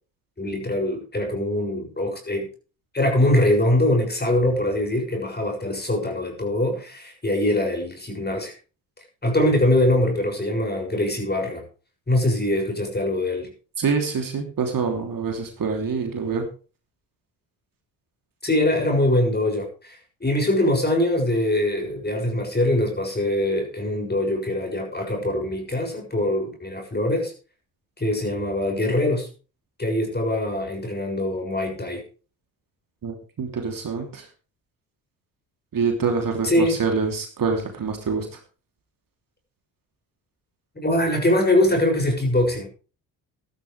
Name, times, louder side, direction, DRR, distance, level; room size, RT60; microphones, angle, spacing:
voice 1, 0.4-2.5 2.9-8.5 9.2-11.6 12.1-13.5 18.4-27.3 28.0-29.3 29.8-32.0 36.4-36.8 40.8-42.7, left 1 dB, 20° left, 3 dB, 6.9 m, -23 dB
voice 2, 13.8-16.4 33.0-34.3 35.7-38.4, right 5 dB, 40° right, 3 dB, 3.2 m, -26 dB
15.0 x 12.5 x 3.4 m, 0.36 s
hypercardioid pair, 50°, 49 cm